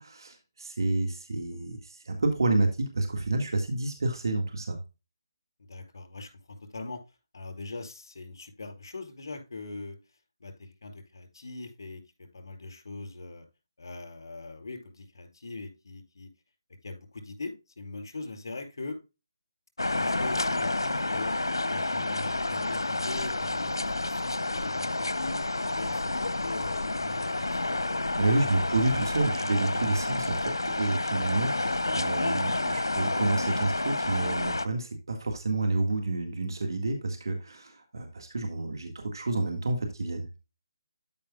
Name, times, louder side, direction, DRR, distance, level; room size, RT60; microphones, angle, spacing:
voice 1, 0.0-4.8 28.1-40.3, right 2 dB, 70° right, 4 dB, 2.0 m, -29 dB
voice 2, 5.6-7.0 7.3-10.0 10.4-12.0 12.3-13.4 13.8-16.3 16.8-19.0 19.9-21.3 21.7-25.4 25.7-26.0 26.4-27.5, left 3 dB, 65° left, 5 dB, 4.2 m, -41 dB
sound 1, 19.8-34.7, left 2 dB, 85° left, 0.9 m, -29 dB
13.0 x 5.5 x 2.4 m, 0.28 s
figure-of-eight pair, 155°, 2 cm